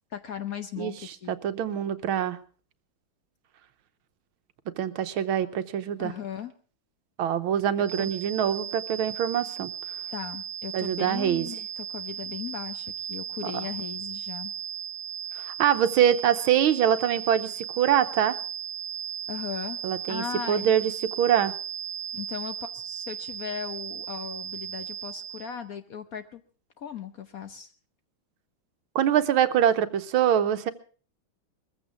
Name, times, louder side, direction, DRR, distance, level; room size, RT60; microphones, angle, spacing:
voice 1, 0.1-1.4 6.0-6.5 8.0-8.1 10.1-14.5 19.3-19.8 20.1-20.7 22.1-26.4 26.8-27.7, left 8 dB, 55° left, 10 dB, 1.1 m, -37 dB
voice 2, 1.3-2.4 4.8-6.1 7.2-9.7 10.7-11.5 15.4-18.4 19.8-20.9 21.2-21.5 28.9-30.7, right 9 dB, 80° right, 11 dB, 1.7 m, -24 dB
sound 1, 7.8-25.6, right 8 dB, 65° right, 0.4 m, -36 dB
21.5 x 15.0 x 3.5 m, 0.40 s
omnidirectional pair, 2.3 m